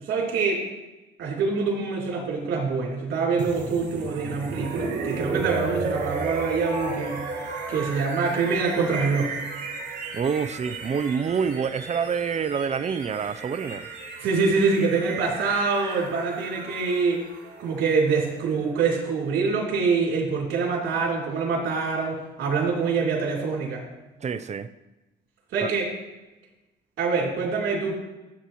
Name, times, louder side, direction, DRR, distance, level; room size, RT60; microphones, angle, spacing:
voice 1, 0.1-0.6 1.2-7.2 7.7-9.3 14.2-17.2 17.6-23.8 25.5-25.9 27.0-27.9, right 4 dB, 85° right, -3 dB, 3.4 m, -25 dB
sound 1, 3.4-19.3, right 4 dB, 60° right, 3.3 m, -34 dB
voice 2, 10.1-13.9 24.2-24.7 25.6-25.7, right 6 dB, 35° right, 13 dB, 0.6 m, -27 dB
14.0 x 8.3 x 3.1 m, 1.1 s
cardioid pair, 90°, 20 cm